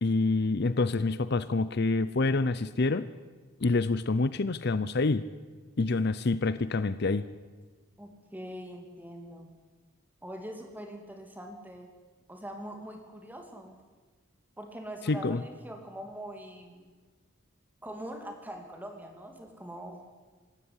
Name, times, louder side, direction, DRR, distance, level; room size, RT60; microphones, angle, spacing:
voice 1, 0.0-3.1 3.6-5.2 5.8-7.2 15.0-15.4, left 3 dB, 50° left, 14 dB, 0.6 m, -27 dB
voice 2, 8.0-9.5 10.2-11.9 12.3-13.8 14.6-16.8 17.8-20.0, equal, 10° right, 4 dB, 2.8 m, -43 dB
25.5 x 13.0 x 9.8 m, 1.4 s
head